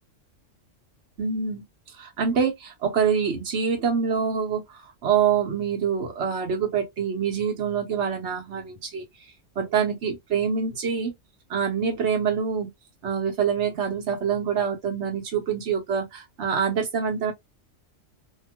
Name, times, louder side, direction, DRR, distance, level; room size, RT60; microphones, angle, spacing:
voice 1, 1.2-1.6 2.0-4.6 5.0-9.0 9.6-11.1 11.5-12.7 13.0-17.3, right 7 dB, 65° right, 1.2 m, -25 dB
2.8 x 2.3 x 2.8 m
omnidirectional pair, 1.3 m